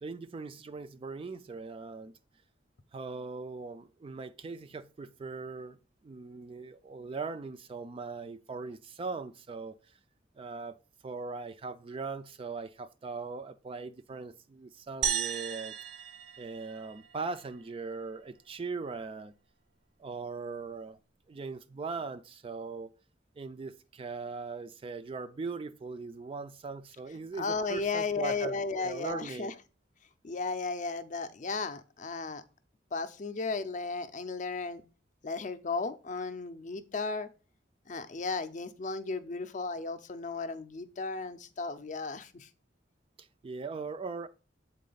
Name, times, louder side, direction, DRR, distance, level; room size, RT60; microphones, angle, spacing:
voice 1, 0.0-2.1 2.9-5.8 6.0-9.8 10.4-10.8 11.0-15.7 16.4-19.3 20.0-21.0 21.3-22.9 23.4-29.5 43.2-44.3, right 4 dB, 30° right, 0.3 m, -40 dB
sound 1, 15.0-17.5, right 8 dB, 60° right, 0.7 m, -35 dB
voice 2, 27.4-29.5 30.2-32.4 32.9-34.8 35.2-37.3 37.9-42.5, left 4 dB, 40° left, 0.5 m, -35 dB
7.5 x 4.2 x 3.8 m
head